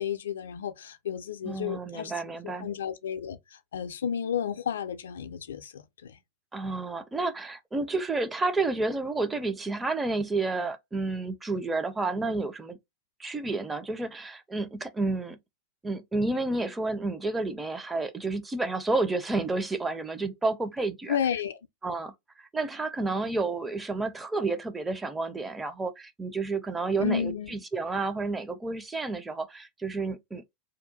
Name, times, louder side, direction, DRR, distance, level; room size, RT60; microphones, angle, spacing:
voice 1, 0.0-2.1 2.4-6.2 21.1-21.6 27.0-27.5, left 8 dB, 65° left, 0.4 m, -32 dB
voice 2, 1.4-2.7 6.5-12.8 13.2-15.4 15.8-21.2 21.8-30.5, right 3 dB, 10° right, 0.4 m, -30 dB
2.7 x 2.2 x 3.7 m
figure-of-eight pair, 90°, 0 cm